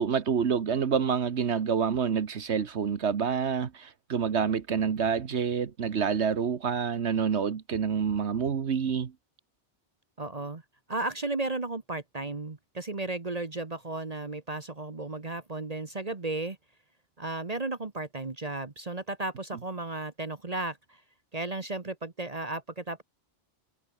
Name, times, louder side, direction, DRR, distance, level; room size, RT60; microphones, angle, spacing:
voice 1, 0.0-9.1, right 6 dB, 75° right, 1.5 m, -27 dB
voice 2, 10.2-10.6 10.9-16.6 17.2-21.0 21.3-23.0, right 2 dB, 35° right, 1.4 m, -34 dB
omnidirectional pair, 1.2 m